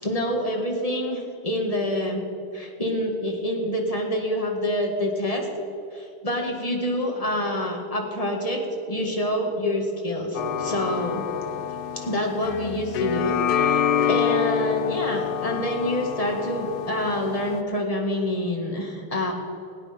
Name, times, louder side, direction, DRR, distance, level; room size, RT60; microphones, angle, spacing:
voice 1, 0.0-2.2 2.5-5.5 5.9-8.6 8.9-11.3 11.9-19.3, left 1 dB, 20° left, 1 dB, 1.7 m, -27 dB
sound 1, 10.3-17.6, left 9 dB, 75° left, 0.9 m, -27 dB
18.5 x 9.2 x 5.3 m, 2.8 s
omnidirectional pair, 2.4 m